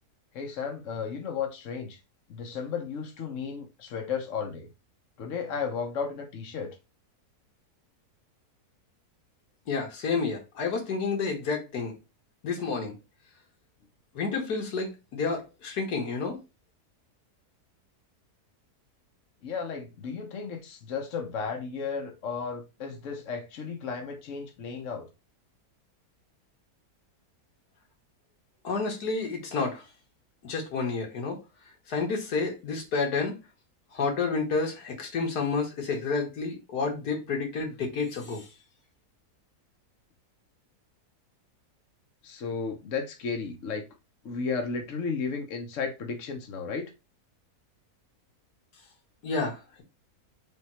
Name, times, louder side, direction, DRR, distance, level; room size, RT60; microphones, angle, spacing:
voice 1, 0.3-2.0 2.3-4.7 5.2-6.7 19.4-25.1 42.2-43.8 44.2-46.9, left 5 dB, 55° left, 1.2 m, -34 dB
voice 2, 9.7-11.9 12.4-13.0 14.2-16.4 28.6-29.8 30.4-31.4 31.9-33.3 33.9-38.5 49.2-49.6, left 4 dB, 80° left, 1.8 m, -30 dB
3.6 x 3.5 x 4.2 m
omnidirectional pair, 1.7 m